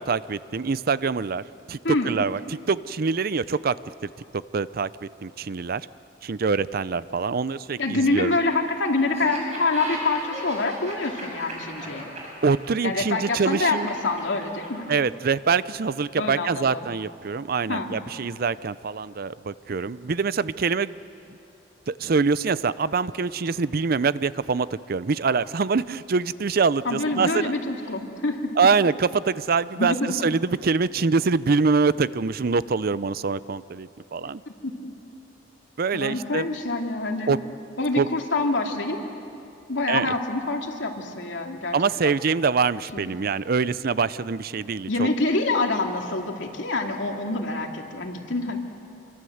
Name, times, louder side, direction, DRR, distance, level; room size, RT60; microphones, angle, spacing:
voice 1, 0.0-1.8 2.1-2.4 2.7-3.8 4.5-4.9 5.2-5.8 6.2-8.4 12.4-13.9 14.9-20.9 21.9-27.5 28.6-29.9 30.2-34.4 35.8-36.6 37.3-37.4 38.0-38.1 39.9-40.1 41.7-45.1, right 5 dB, 55° right, 17 dB, 0.5 m, -24 dB
voice 2, 1.8-2.2 7.8-12.1 12.8-14.9 16.2-16.9 17.7-17.9 26.8-28.4 29.8-30.1 34.6-34.7 35.9-37.3 37.8-39.0 39.7-42.1 42.9-43.1 44.9-48.6, left 2 dB, 85° left, 2 dB, 2.5 m, -26 dB
Laughter, 9.1-14.9, right 1 dB, 40° right, 6.9 m, -36 dB
27.0 x 24.0 x 7.9 m, 2.7 s
head